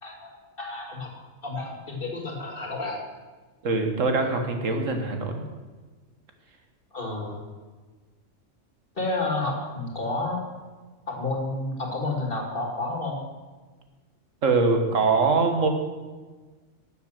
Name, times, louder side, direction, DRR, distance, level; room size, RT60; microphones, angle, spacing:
voice 1, 0.6-1.1 1.4-3.0 6.9-7.4 9.0-10.4 11.1-13.2, left 2 dB, 45° left, 0 dB, 2.4 m, -30 dB
voice 2, 3.6-5.4 14.4-15.7, right 3 dB, 75° right, 5 dB, 1.7 m, -23 dB
12.5 x 7.3 x 6.5 m, 1.3 s
omnidirectional pair, 1.3 m